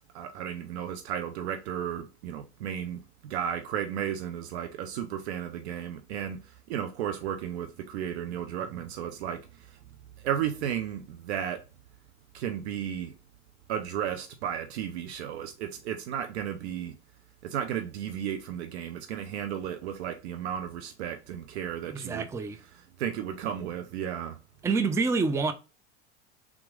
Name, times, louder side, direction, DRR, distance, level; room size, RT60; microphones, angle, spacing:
voice 1, 0.1-6.4 6.7-9.4 10.2-11.6 12.3-13.1 13.7-16.9 17.4-22.3 23.0-24.4, right 9 dB, 70° right, 0.6 m, -34 dB
voice 2, 21.9-22.6 24.6-25.5, right 4 dB, 10° right, 0.4 m, -27 dB
3.7 x 3.0 x 3.6 m
hypercardioid pair, 80°, 34 cm